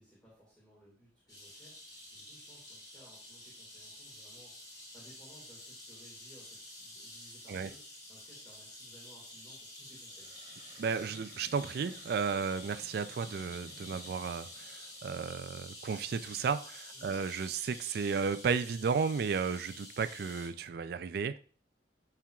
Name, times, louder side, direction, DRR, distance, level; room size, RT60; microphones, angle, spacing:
voice 1, 0.0-10.3 16.9-17.2, equal, 10° left, -7 dB, 2.0 m, -60 dB
sound 1, 1.3-20.5, left 1 dB, 25° left, 3.1 m, -49 dB
sound 2, 10.1-15.1, right 2 dB, 30° right, 0.9 m, -58 dB
voice 2, 10.8-21.4, right 5 dB, 60° right, 12 dB, 0.3 m, -33 dB
11.0 x 4.5 x 2.3 m, 0.42 s
head